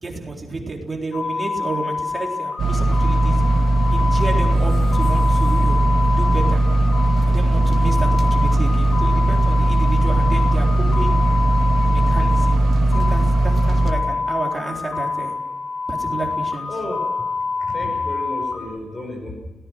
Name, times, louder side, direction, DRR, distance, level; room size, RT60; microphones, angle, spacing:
voice 1, 0.0-3.4 3.9-5.8 6.1-6.6 7.2-11.2 11.9-12.6 12.9-15.3 15.9-16.7, right 3 dB, 20° right, 0 dB, 3.8 m, -31 dB
sound 1, 1.1-18.6, left 4 dB, 70° left, 6.2 m, -27 dB
sound 2, 2.6-13.9, right 1 dB, 50° right, 2.1 m, -18 dB
voice 2, 16.7-17.1 17.6-19.4, left 1 dB, 25° left, 2 dB, 5.4 m, -32 dB
29.0 x 18.5 x 6.3 m, 1.2 s
wide cardioid pair, 180°, 0 cm